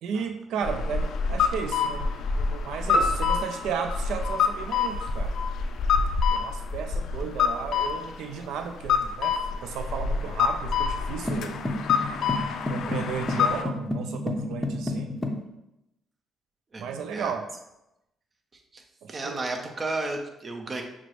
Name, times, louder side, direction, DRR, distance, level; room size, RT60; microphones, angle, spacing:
voice 1, 0.0-5.4 6.3-11.6 12.7-15.1 16.8-17.5 19.0-19.4, right 6 dB, 75° right, 6 dB, 0.3 m, -34 dB
sound 1, 0.6-13.6, left 6 dB, 70° left, 0.3 m, -27 dB
sound 2, 2.9-5.4, right 1 dB, 10° right, 1.2 m, -31 dB
sound 3, 11.3-15.5, left 1 dB, 15° left, 0.6 m, -31 dB
voice 2, 16.7-17.3 18.7-18.8 19.1-20.8, right 2 dB, 40° right, 3 dB, 0.7 m, -33 dB
6.0 x 2.0 x 3.0 m, 0.87 s
supercardioid pair, 65°, 0 cm